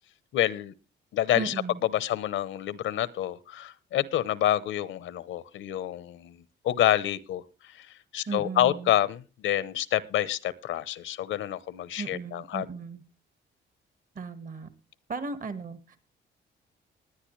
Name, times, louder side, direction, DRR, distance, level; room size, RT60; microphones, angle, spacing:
voice 1, 0.3-0.7 1.1-1.5 1.8-12.7, left 12 dB, 80° left, 18 dB, 0.9 m, -28 dB
voice 2, 1.3-1.8 8.3-8.9 12.0-13.0 14.1-14.7 15.1-16.0, right 4 dB, 45° right, 11 dB, 1.7 m, -36 dB
20.5 x 9.7 x 3.2 m, 0.32 s
cardioid pair, 90°, 20 cm